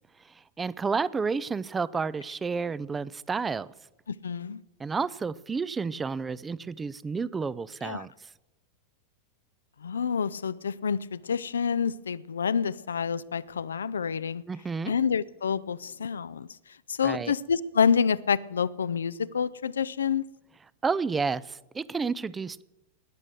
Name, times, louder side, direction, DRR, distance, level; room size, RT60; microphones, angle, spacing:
voice 1, 0.6-3.7 4.8-8.1 14.5-14.9 17.0-17.3 20.8-22.6, right 5 dB, 15° right, 0.4 m, -30 dB
voice 2, 4.1-4.6 7.8-8.1 9.8-14.4 14.9-16.5 16.9-20.3, left 6 dB, 70° left, 0.4 m, -28 dB
19.0 x 7.4 x 8.1 m
figure-of-eight pair, 90°, 0 cm